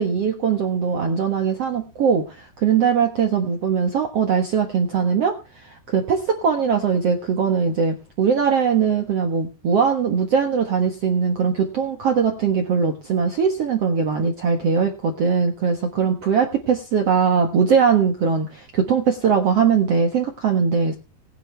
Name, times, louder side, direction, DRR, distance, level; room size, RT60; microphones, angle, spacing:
voice 1, 0.0-21.0, right 6 dB, 60° right, 4 dB, 1.6 m, -21 dB
19.5 x 10.0 x 3.4 m, 0.31 s
omnidirectional pair, 4.8 m